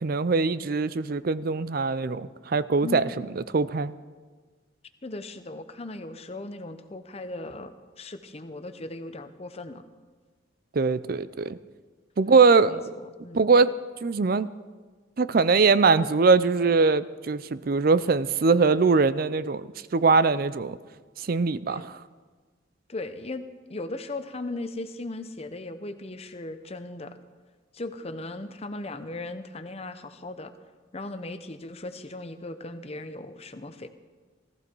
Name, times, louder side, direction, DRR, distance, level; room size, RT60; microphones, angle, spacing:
voice 1, 0.0-3.9 10.7-11.6 12.2-12.8 13.3-13.7 14.0-14.5 15.2-20.8 21.2-22.0, right 4 dB, 50° right, 15 dB, 0.5 m, -22 dB
voice 2, 2.8-3.2 5.0-9.8 12.7-12.8 13.2-13.5 21.7-21.9 22.9-27.2 27.7-30.5 30.9-33.9, left 2 dB, 35° left, 10 dB, 0.8 m, -37 dB
18.0 x 14.5 x 4.6 m, 1.4 s
head